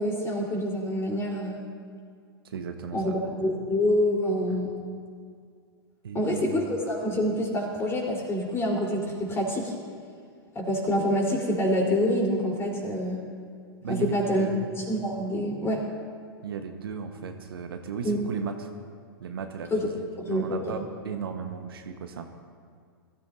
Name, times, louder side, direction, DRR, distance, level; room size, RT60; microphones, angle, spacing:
voice 1, 0.0-1.6 2.9-4.7 6.1-9.7 10.5-13.2 13.9-14.5 14.8-15.8 18.0-18.2 19.7-19.9 20.3-20.6, equal, 20° left, -1 dB, 3.8 m, -26 dB
voice 2, 2.4-3.1 4.5-4.6 6.0-6.5 13.8-14.7 16.4-18.7 19.2-22.3, right 6 dB, 70° right, 5 dB, 1.2 m, -36 dB
21.5 x 14.5 x 2.7 m, 2.1 s
figure-of-eight pair, 100°, 13 cm